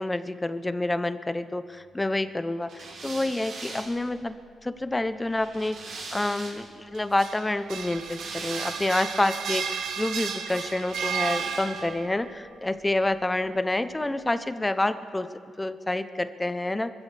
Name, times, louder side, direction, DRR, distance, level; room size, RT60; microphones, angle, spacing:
voice 1, 0.0-4.4 4.6-15.3 15.6-16.9, left 2 dB, 10° left, 11 dB, 0.6 m, -28 dB
sound 1, 2.7-6.8 7.7-9.1 10.8-12.1, right 3 dB, 65° right, 3.5 m, -41 dB
sound 2, 7.0-12.1, right 7 dB, 90° right, 1.2 m, -33 dB
26.0 x 15.5 x 3.4 m, 2.1 s
cardioid pair, 130°, 0 cm